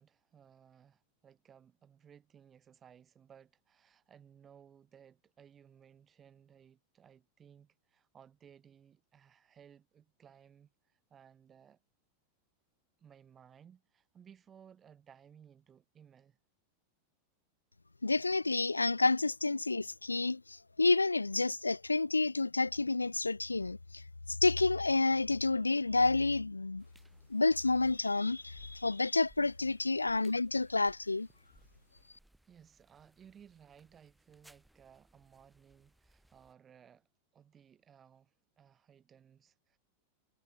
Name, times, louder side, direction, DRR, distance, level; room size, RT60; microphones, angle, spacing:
voice 1, 0.0-11.8 13.0-16.4 32.5-37.1 37.3-39.8, right 8 dB, 25° right, 4.0 m, -60 dB
voice 2, 18.0-24.0 24.3-26.8 27.3-31.3, left 3 dB, 80° left, 0.4 m, -29 dB
sound 1, 26.8-36.5, right 1 dB, 5° right, 4.6 m, -66 dB
figure-of-eight pair, 90°, 0 cm